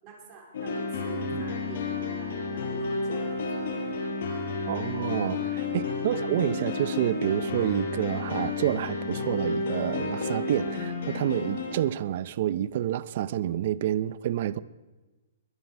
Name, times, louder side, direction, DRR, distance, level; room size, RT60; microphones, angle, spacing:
voice 1, 0.0-3.9 5.3-5.8, right 4 dB, 30° right, 4.0 m, -47 dB
sound 1, 0.5-11.7, left 3 dB, 65° left, 5.0 m, -31 dB
voice 2, 4.7-14.6, right 11 dB, 50° right, 0.6 m, -28 dB
22.5 x 10.0 x 4.5 m
hypercardioid pair, 150°, 0 cm